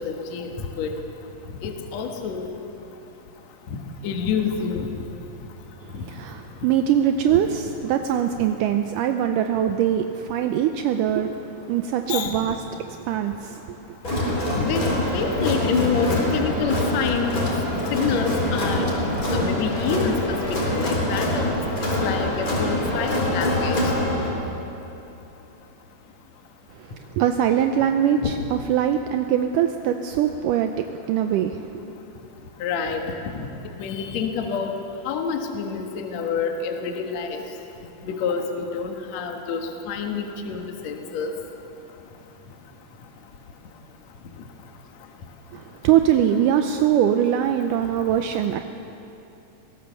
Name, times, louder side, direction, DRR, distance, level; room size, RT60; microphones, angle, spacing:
voice 1, 0.1-0.9 1.6-2.5 3.7-3.8 4.0-4.9 5.9-6.1 12.1-12.4 14.6-14.8 15.1-17.4 17.9-18.9 19.3-20.4 20.7-21.6 22.0-23.8 28.2-28.3 32.6-33.0 33.8-34.8 35.1-37.4 38.1-39.6 39.9-41.3, left 6 dB, 60° left, 3 dB, 2.4 m, -27 dB
voice 2, 6.1-11.3 11.6-13.8 27.2-31.6 45.5-48.6, right 10 dB, 80° right, 6 dB, 2.1 m, -22 dB
Crowd, 14.0-24.3, left 1 dB, 25° left, 3.8 m, -24 dB
23.5 x 17.5 x 6.9 m, 2.9 s
omnidirectional pair, 4.0 m